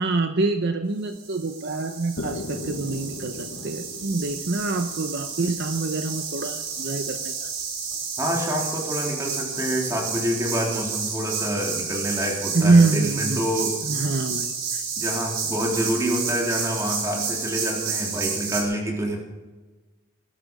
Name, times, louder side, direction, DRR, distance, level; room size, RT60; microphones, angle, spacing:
voice 1, 0.0-7.5 12.5-13.5 13.8-14.8, right 3 dB, 55° right, 7 dB, 0.8 m, -25 dB
sound 1, 1.1-18.6, right 5 dB, 70° right, 4.8 m, -31 dB
sound 2, 2.2-6.1, left 2 dB, 85° left, 1.3 m, -37 dB
voice 2, 8.2-13.8 15.0-19.2, equal, 15° right, -1 dB, 3.6 m, -27 dB
20.0 x 11.5 x 5.4 m, 1.2 s
head